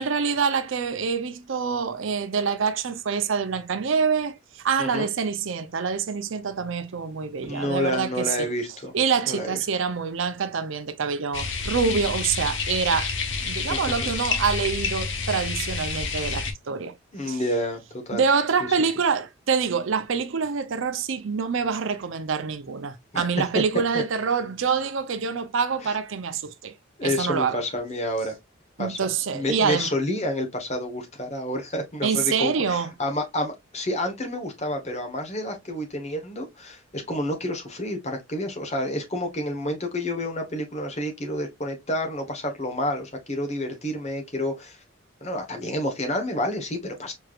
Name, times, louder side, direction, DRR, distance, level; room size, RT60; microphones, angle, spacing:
voice 1, 0.0-8.5 8.9-16.9 17.2-17.4 18.1-26.7 27.0-27.6 28.8-29.9 32.0-32.9, right 5 dB, 70° right, 0.5 m, -26 dB
voice 2, 4.8-5.1 7.5-8.9 9.3-9.6 13.7-13.8 17.1-18.2 23.1-23.3 23.5-23.6 25.8-25.9 27.0-28.4 28.8-29.0 29.3-44.8 45.2-47.1, left 1 dB, 35° left, 1.2 m, -29 dB
sound 1, 11.3-16.5, left 4 dB, 65° left, 1.0 m, -29 dB
4.5 x 3.2 x 2.4 m
head